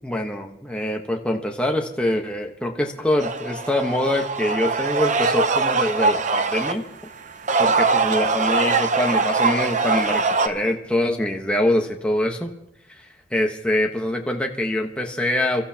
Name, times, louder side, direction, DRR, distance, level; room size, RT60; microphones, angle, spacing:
voice 1, 0.0-6.8 7.6-12.5 12.9-13.0 13.3-15.6, left 1 dB, 5° left, 1 dB, 1.1 m, -24 dB
sound 1, 3.2-6.7 7.3-10.5, right 4 dB, 40° right, 0.7 m, -22 dB
29.5 x 14.0 x 2.9 m, 0.81 s
head